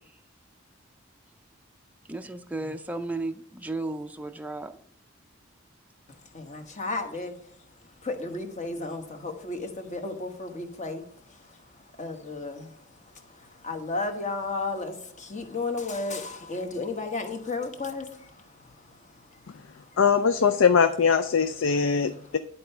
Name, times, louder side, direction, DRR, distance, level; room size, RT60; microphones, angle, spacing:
voice 1, 2.1-4.8, right 2 dB, 10° right, 0.4 m, -34 dB
voice 2, 6.3-7.3 8.0-20.0, left 3 dB, 35° left, 1.1 m, -34 dB
voice 3, 20.0-22.4, left 6 dB, 70° left, 0.5 m, -21 dB
10.5 x 4.4 x 5.6 m
head